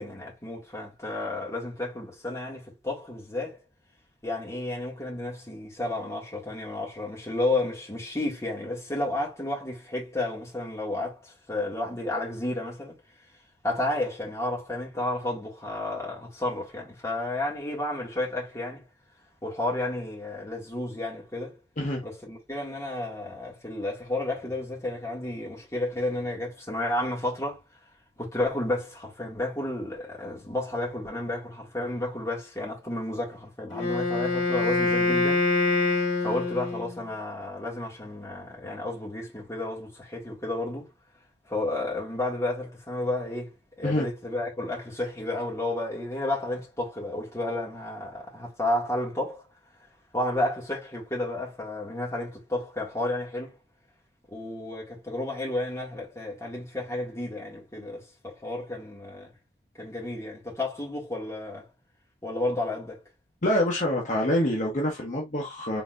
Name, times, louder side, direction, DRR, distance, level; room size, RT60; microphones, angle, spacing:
voice 1, 0.0-3.6 4.2-13.0 13.6-18.9 19.4-21.6 22.0-27.6 28.2-35.4 36.2-40.9 41.5-49.5 50.1-53.6 54.3-59.3 59.8-61.7 62.2-63.0, left 2 dB, 15° left, 2.1 m, -32 dB
Wind instrument woodwind instrument, 33.7-37.0, left 3 dB, 75° left, 2.2 m, -25 dB
voice 2, 63.4-65.8, left 1 dB, 45° left, 0.9 m, -26 dB
4.0 x 3.9 x 2.5 m
head